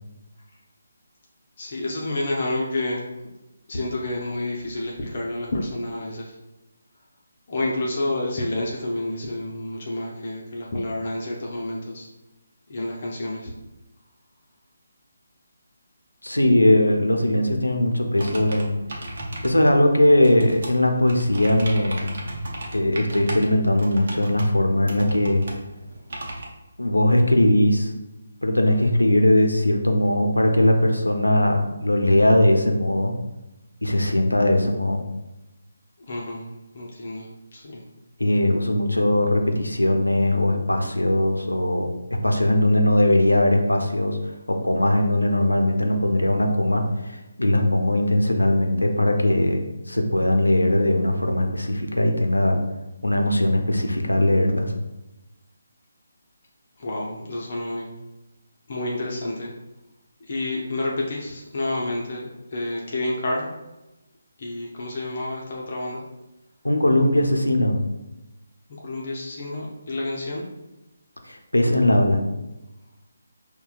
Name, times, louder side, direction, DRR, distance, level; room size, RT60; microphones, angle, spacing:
voice 1, 1.6-3.0 3.7-6.3 7.5-12.1 12.7-13.5 36.1-36.5 36.7-37.8 56.8-57.9 58.7-59.5 60.3-63.5 64.4-66.0 68.8-70.4, left 2 dB, 45° left, -3 dB, 0.7 m, -29 dB
voice 2, 16.2-18.7 19.0-19.1 19.4-22.1 22.7-25.4 26.8-27.9 28.4-33.1 33.8-35.0 38.2-41.9 42.2-44.2 44.5-52.6 53.0-54.7 66.6-67.8 71.3-72.2, left 1 dB, 85° left, 3 dB, 0.6 m, -20 dB
sound 1, 18.2-26.5, right 1 dB, 50° right, 0.7 m, -36 dB
5.5 x 2.2 x 2.3 m, 1.0 s
figure-of-eight pair, 150°, 0 cm